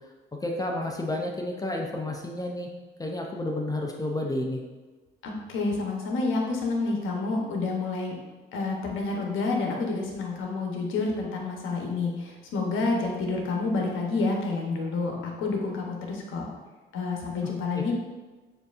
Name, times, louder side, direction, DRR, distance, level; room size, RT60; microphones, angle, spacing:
voice 1, 0.4-2.7 3.0-4.6 17.7-17.9, left 1 dB, 20° left, 0 dB, 0.5 m, -31 dB
voice 2, 5.2-8.2 8.5-16.5 16.9-17.9, left 3 dB, 80° left, 0 dB, 0.9 m, -29 dB
6.6 x 2.7 x 2.5 m, 1.3 s
cardioid pair, 90°, 20 cm